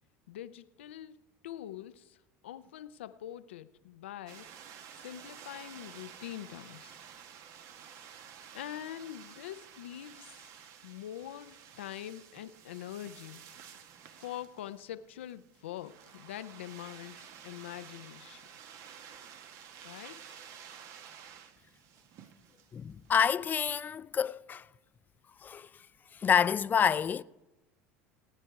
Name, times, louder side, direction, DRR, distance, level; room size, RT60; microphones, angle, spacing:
voice 1, 0.3-1.2 1.4-2.2 2.4-4.5 5.0-7.0 8.5-10.5 10.8-13.4 14.2-18.5 19.8-20.4, left 12 dB, 90° left, 0.5 m, -44 dB
sound 1, 4.3-23.2, right 8 dB, 60° right, 1.1 m, -52 dB
voice 2, 22.7-24.6 25.4-25.7 26.2-27.2, left 7 dB, 30° left, 0.4 m, -28 dB
17.5 x 9.2 x 4.7 m
hypercardioid pair, 90°, 6 cm